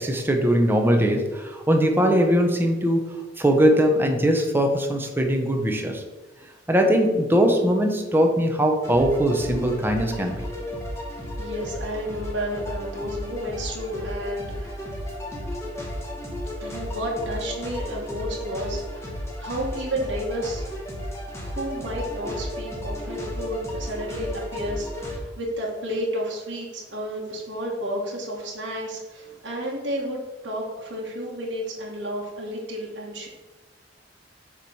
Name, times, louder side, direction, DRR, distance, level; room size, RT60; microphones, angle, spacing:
voice 1, 0.0-3.0 3.4-6.0 6.7-10.4, equal, 10° right, 3 dB, 0.8 m, -21 dB
sound 1, 8.8-25.2, left 1 dB, 15° left, 1.2 m, -34 dB
voice 2, 11.4-14.8 16.6-20.6 21.4-33.3, equal, 75° right, -3 dB, 1.4 m, -31 dB
7.2 x 3.1 x 5.4 m, 1.2 s
head